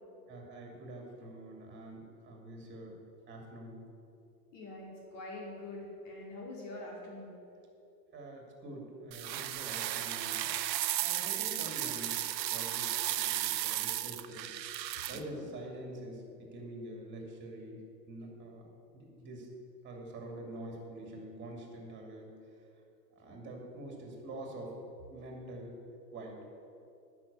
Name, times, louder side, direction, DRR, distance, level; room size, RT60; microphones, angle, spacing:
voice 1, 0.3-3.0 3.3-3.8 8.1-10.5 11.0-12.2 12.5-14.5 15.1-17.8 18.1-18.7 18.9-19.5 19.8-22.3 23.2-24.7 25.1-25.8 26.1-26.4, right 1 dB, 20° right, 1 dB, 2.5 m, -45 dB
voice 2, 4.5-7.3 15.0-15.5, left 2 dB, 45° left, -3 dB, 2.8 m, -45 dB
sound 1, 9.1-15.2, right 13 dB, 85° right, 0.8 m, -34 dB
10.0 x 6.3 x 8.5 m, 2.7 s
hypercardioid pair, 130°, 50 cm